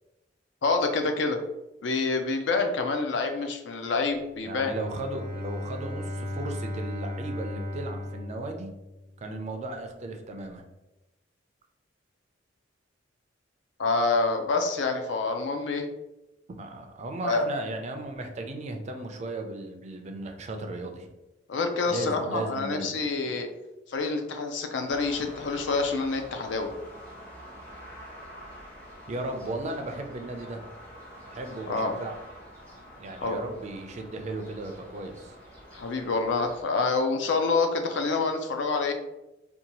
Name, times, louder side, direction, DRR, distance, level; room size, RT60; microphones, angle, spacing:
voice 1, 0.6-1.4 1.8-4.7 13.8-15.8 17.2-17.5 21.5-23.5 23.9-26.7 31.7-32.0 33.2-33.4 35.7-38.9, left 3 dB, 65° left, 5 dB, 0.4 m, -27 dB
Bowed string instrument, 4.4-9.3, left 1 dB, 50° left, 1.0 m, -36 dB
voice 2, 4.4-8.7 9.2-10.6 16.6-21.1 21.9-23.0 23.3-23.4 29.1-30.6 31.3-32.2 33.0-35.3, right 2 dB, 35° right, 4 dB, 0.3 m, -36 dB
sound 1, 24.9-36.6, equal, 10° left, 0.6 m, -47 dB
2.7 x 2.2 x 2.8 m, 0.98 s
head